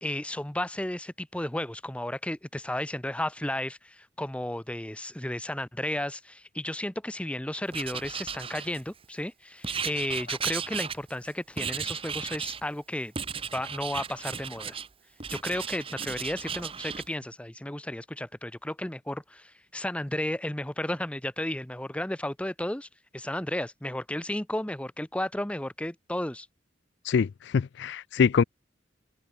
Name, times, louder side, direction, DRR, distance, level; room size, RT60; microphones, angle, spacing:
voice 1, 0.0-13.1 13.5-14.8 15.3-22.9 23.1-26.5, left 1 dB, 5° left, 0.8 m, -33 dB
Writing, 7.7-9.0 9.6-11.3 11.6-12.6 13.2-14.9 15.2-17.1, right 6 dB, 30° right, 1.2 m, -35 dB
voice 2, 27.1-28.4, left 6 dB, 60° left, 0.4 m, -24 dB
open air
head